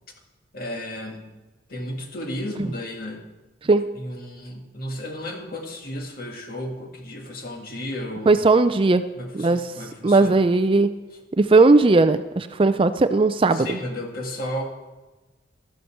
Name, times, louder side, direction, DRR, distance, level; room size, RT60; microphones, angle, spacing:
voice 1, 0.5-1.3 1.7-3.2 3.9-8.3 9.1-10.4 11.1-11.2 13.5-14.6, left 1 dB, 50° left, 2 dB, 2.0 m, -33 dB
voice 2, 8.3-9.0 9.3-9.6 10.0-10.9 11.4-13.7, right 3 dB, 30° right, 11 dB, 0.4 m, -17 dB
13.5 x 12.0 x 4.5 m, 1.2 s
head